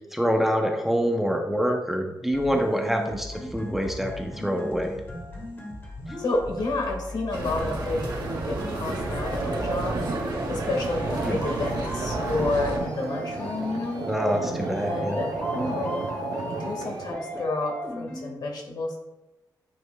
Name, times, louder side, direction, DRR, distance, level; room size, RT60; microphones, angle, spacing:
voice 1, 0.1-4.9 11.2-11.4 14.1-15.2, equal, 5° right, 2 dB, 0.6 m, -26 dB
sound 1, 2.3-18.3, left 1 dB, 30° left, 1.6 m, -38 dB
voice 2, 6.2-14.0 14.8-16.1 16.3-19.0, left 2 dB, 70° left, 1 dB, 1.6 m, -30 dB
sound 2, 7.3-12.8, right 2 dB, 85° right, 1.5 m, -32 dB
sound 3, 8.2-17.1, right 4 dB, 60° right, 0.5 m, -33 dB
9.3 x 5.2 x 2.2 m, 0.97 s
wide cardioid pair, 165°, 7 cm